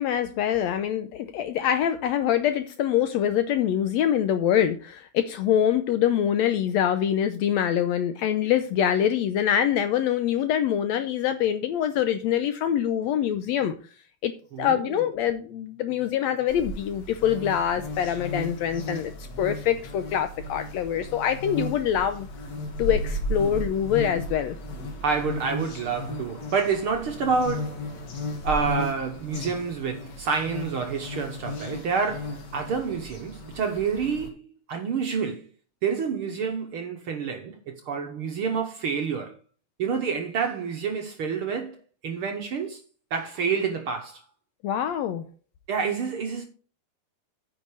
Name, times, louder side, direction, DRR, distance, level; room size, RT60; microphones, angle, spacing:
voice 1, 0.0-13.8 14.2-14.3 14.6-22.3 22.8-24.6 44.6-45.2, left 9 dB, 80° left, 1.6 m, -25 dB
voice 2, 14.5-15.0 25.0-27.9 28.4-34.4 34.7-35.5 35.8-39.3 39.8-41.8 42.0-42.8 43.1-44.2 45.7-46.5, right 5 dB, 60° right, 1.5 m, -28 dB
sound 1, 16.5-34.3, left 1 dB, 60° left, 2.8 m, -35 dB
9.3 x 6.0 x 4.9 m
omnidirectional pair, 3.6 m